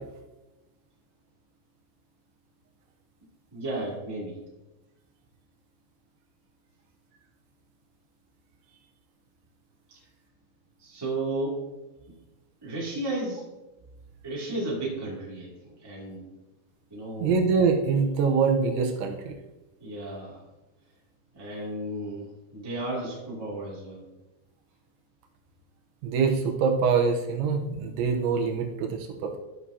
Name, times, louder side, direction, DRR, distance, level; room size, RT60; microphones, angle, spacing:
voice 1, 3.5-4.4 10.8-11.6 12.6-13.4 14.2-15.5 15.8-16.2 16.9-17.3 19.8-20.4 21.3-22.2 22.5-24.0, right 2 dB, 10° right, -6 dB, 1.2 m, -33 dB
voice 2, 17.2-19.3 26.0-29.4, right 5 dB, 85° right, 2 dB, 3.3 m, -24 dB
14.0 x 6.2 x 2.8 m, 1.0 s
omnidirectional pair, 5.3 m